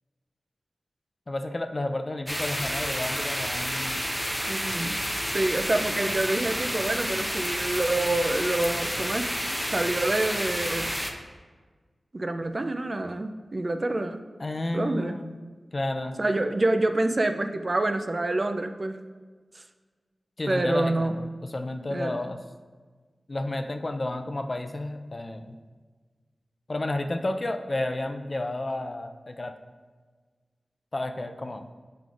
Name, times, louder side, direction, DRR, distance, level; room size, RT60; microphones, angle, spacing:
voice 1, 1.3-4.0 14.4-15.4 15.7-16.2 20.4-22.4 23.3-25.6 26.7-29.6 30.9-31.7, left 1 dB, 40° left, 6 dB, 0.4 m, -31 dB
sound 1, 2.3-11.1, equal, ahead, 0.6 m, -30 dB
voice 2, 4.5-5.1 5.3-10.9 12.1-14.2 14.7-15.2 16.2-19.0 19.6-19.7 20.5-21.2 21.9-22.2, right 2 dB, 45° right, 7 dB, 0.4 m, -27 dB
7.5 x 5.2 x 2.4 m, 1.4 s
cardioid pair, 55°, 0 cm